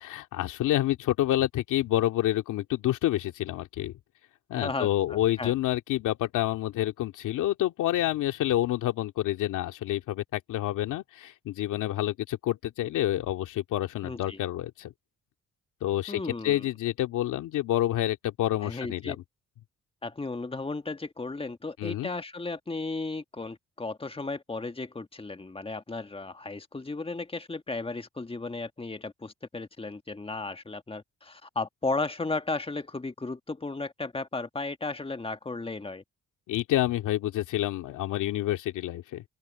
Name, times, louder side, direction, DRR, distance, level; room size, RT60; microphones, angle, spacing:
voice 1, 0.0-3.9 4.5-14.9 15.8-19.2 21.8-22.1 36.5-39.2, left 13 dB, 85° left, 2.5 m, -28 dB
voice 2, 4.5-5.5 14.0-14.4 16.1-16.7 18.6-19.2 20.0-36.0, left 3 dB, 20° left, 1.5 m, -35 dB
open air
cardioid pair, 90°, 30 cm